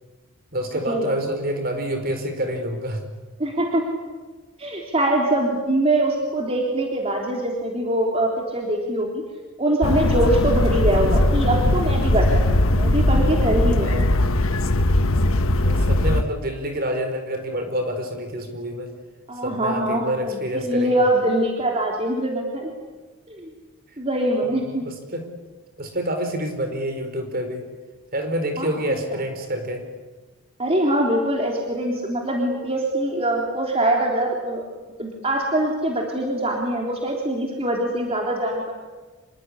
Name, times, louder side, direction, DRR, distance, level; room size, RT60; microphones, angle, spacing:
voice 1, 0.5-3.0 13.8-14.2 15.6-18.9 19.4-20.9 24.5-25.3 25.8-27.7 28.1-29.9, equal, 45° right, 6 dB, 4.6 m, -28 dB
voice 2, 3.4-3.9 4.6-9.2 9.6-14.1 19.3-22.7 23.3-23.5 24.0-24.9 28.6-28.7 30.6-34.6 35.0-38.7, right 1 dB, 25° right, 0 dB, 3.6 m, -23 dB
sound 1, 9.8-16.2, left 1 dB, 70° left, 1.3 m, -19 dB
27.0 x 22.0 x 9.9 m, 1.3 s
head